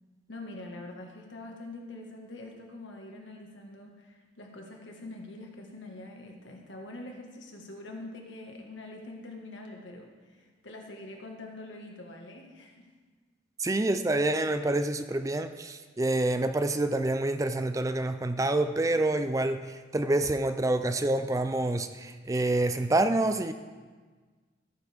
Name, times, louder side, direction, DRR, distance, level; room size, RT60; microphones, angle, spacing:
voice 1, 0.3-12.9, left 2 dB, 75° left, 1 dB, 1.7 m, -44 dB
voice 2, 13.6-23.5, right 2 dB, 15° right, 9 dB, 0.4 m, -27 dB
14.5 x 9.4 x 3.5 m, 1.4 s
head